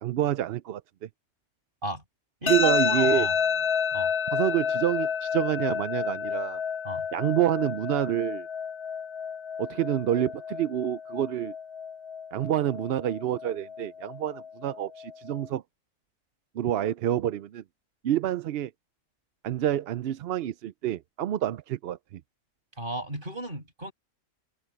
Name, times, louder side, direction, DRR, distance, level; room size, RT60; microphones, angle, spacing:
voice 1, 0.0-1.1 2.5-3.3 4.3-6.6 7.1-8.5 9.6-11.5 12.3-15.6 16.6-17.6 18.0-18.7 19.4-22.2, right 12 dB, 65° right, 0.7 m, -28 dB
voice 2, 2.4-3.4 3.9-4.1 6.8-7.1 22.8-23.9, right 1 dB, 40° right, 7.4 m, -34 dB
sound 1, 2.5-15.4, left 7 dB, 40° left, 0.4 m, -30 dB
omnidirectional pair, 1.3 m